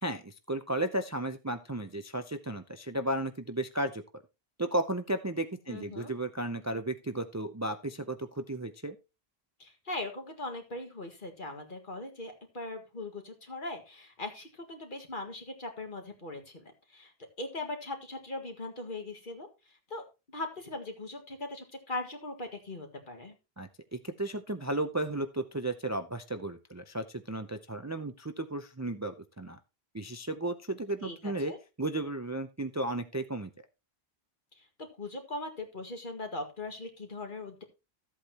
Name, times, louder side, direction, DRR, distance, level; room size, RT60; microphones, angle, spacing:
voice 1, 0.0-4.0 4.6-9.0 23.6-29.6 29.9-31.5 31.8-33.5, right 1 dB, 20° right, 8 dB, 0.5 m, -34 dB
voice 2, 5.7-6.1 9.6-17.1 17.4-20.0 20.3-23.3 31.0-31.6 34.6-37.6, left 2 dB, 50° left, 4 dB, 2.0 m, -40 dB
13.5 x 8.1 x 2.9 m, 0.28 s
omnidirectional pair, 1.1 m